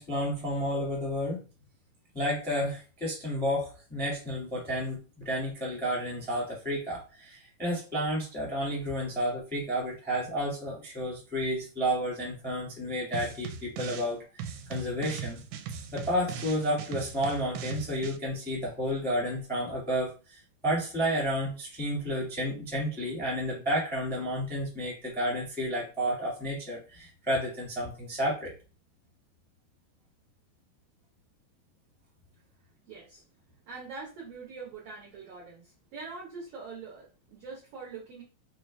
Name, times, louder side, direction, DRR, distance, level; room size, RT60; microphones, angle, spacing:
voice 1, 0.0-1.4 2.1-15.4 15.9-28.5, equal, ahead, -4 dB, 1.0 m, -31 dB
sound 1, 13.1-14.1 14.4-18.2, right 7 dB, 90° right, 2.2 m, -39 dB
voice 2, 32.9-33.2 33.7-38.2, right 4 dB, 65° right, -3 dB, 1.6 m, -43 dB
4.6 x 3.1 x 3.2 m, 0.34 s
omnidirectional pair, 3.7 m